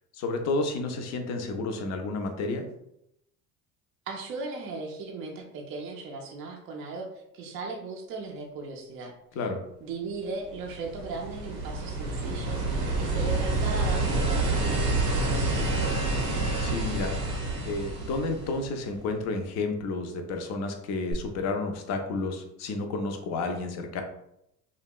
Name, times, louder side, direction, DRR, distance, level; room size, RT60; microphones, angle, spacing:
voice 1, 0.1-2.7 9.3-9.6 16.6-24.0, left 3 dB, 35° left, 5 dB, 0.4 m, -31 dB
voice 2, 4.1-7.1 7.3-9.1 9.8-15.7, right 3 dB, 30° right, 1 dB, 0.4 m, -37 dB
sound 1, 10.5-19.0 21.1-21.2, right 2 dB, 90° right, 0.7 m, -28 dB
2.7 x 2.1 x 2.2 m, 0.80 s
hypercardioid pair, 70°, 49 cm